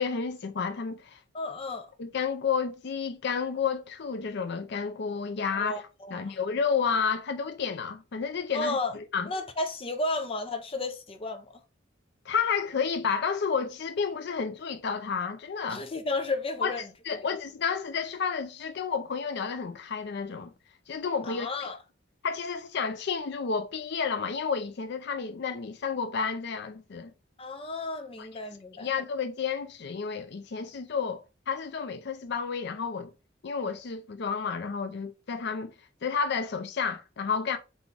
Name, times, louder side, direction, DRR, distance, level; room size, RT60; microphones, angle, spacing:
voice 1, 0.0-1.2 2.0-5.7 6.1-9.3 12.3-15.8 16.6-16.7 17.0-20.5 20.9-21.5 22.2-27.1 28.2-28.3 28.8-33.1 33.4-35.7 36.0-37.6, left 6 dB, 60° left, 0.5 m, -31 dB
voice 2, 1.3-1.9 5.5-6.4 8.5-9.0 9.3-11.6 15.7-17.2 21.2-21.8 27.4-28.9, left 2 dB, 30° left, 0.7 m, -33 dB
4.0 x 3.5 x 3.4 m
head